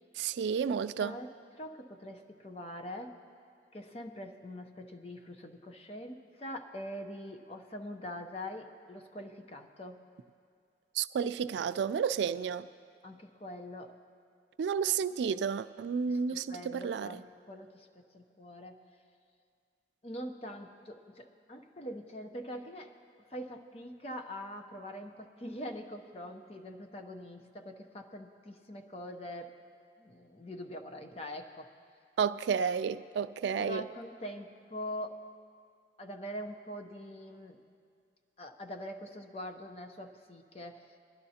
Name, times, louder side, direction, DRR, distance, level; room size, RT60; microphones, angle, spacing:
voice 1, 0.2-1.2 10.9-12.7 14.6-17.2 32.2-33.8, right 7 dB, 85° right, 0.3 m, -31 dB
voice 2, 1.0-1.3 1.6-3.2 3.7-10.0 13.0-14.0 16.1-18.8 20.0-22.9 23.3-29.6 30.0-31.7 33.6-35.2 36.0-37.6 38.4-41.0, equal, 35° left, 0.7 m, -43 dB
21.0 x 11.5 x 2.8 m
head